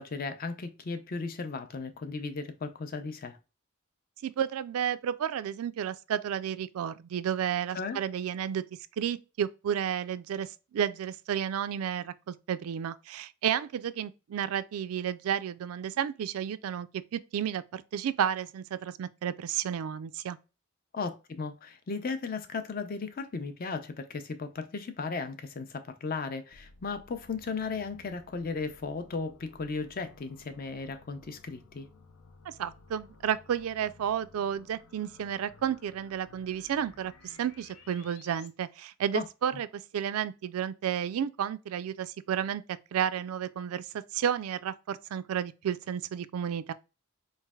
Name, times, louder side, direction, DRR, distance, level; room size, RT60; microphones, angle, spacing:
voice 1, 0.0-3.4 7.7-8.0 20.9-31.9 39.1-39.2, left 4 dB, 40° left, 0.5 m, -36 dB
voice 2, 4.2-8.6 9.0-20.4 32.5-46.7, right 9 dB, 80° right, 0.3 m, -32 dB
sound 1, 26.5-38.5, left 3 dB, 90° left, 0.6 m, -56 dB
4.1 x 3.1 x 2.2 m
head